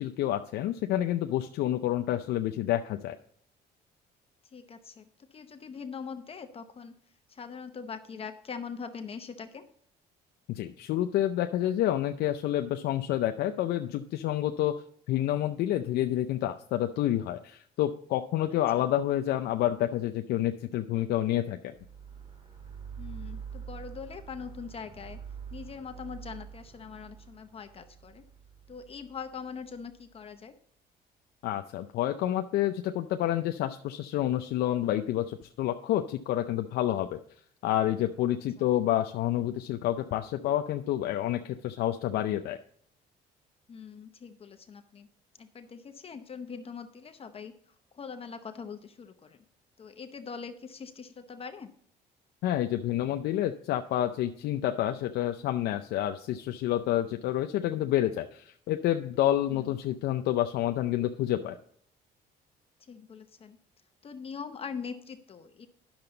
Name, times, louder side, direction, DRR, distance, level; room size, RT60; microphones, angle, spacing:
voice 1, 0.0-3.2 10.5-14.7 15.1-21.7 31.4-37.2 37.6-42.6 52.4-61.6, left 12 dB, 75° left, 6 dB, 0.6 m, -29 dB
voice 2, 4.5-6.9 7.3-9.6 18.8-18.9 23.0-25.2 25.5-28.2 28.7-30.5 38.6-38.7 43.7-45.1 45.4-47.5 47.9-49.4 49.8-51.7 59.5-59.8 62.9-63.6 64.0-65.7, left 6 dB, 35° left, 8 dB, 0.7 m, -42 dB
sound 1, 21.7-30.0, right 7 dB, 35° right, 2.5 m, -46 dB
10.5 x 6.9 x 3.9 m, 0.64 s
cardioid pair, 110°, 17 cm